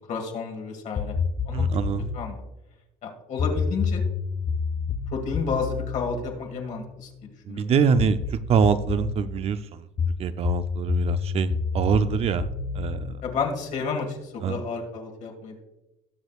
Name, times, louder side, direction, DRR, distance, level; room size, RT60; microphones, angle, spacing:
voice 1, 0.1-1.2 1.5-1.7 2.1-2.4 3.0-4.0 5.1-7.7 13.2-15.6, left 5 dB, 55° left, 2 dB, 1.8 m, -31 dB
sound 1, 1.0-2.2 3.4-7.1 8.0-9.2 10.0-13.9, left 5 dB, 30° left, 1.0 m, -28 dB
voice 2, 1.5-2.1 7.5-9.8 10.2-11.5 11.7-12.5 12.7-13.1 14.4-14.6, right 6 dB, 40° right, 12 dB, 0.5 m, -24 dB
18.5 x 6.3 x 2.4 m, 0.95 s
cardioid pair, 125°, 15 cm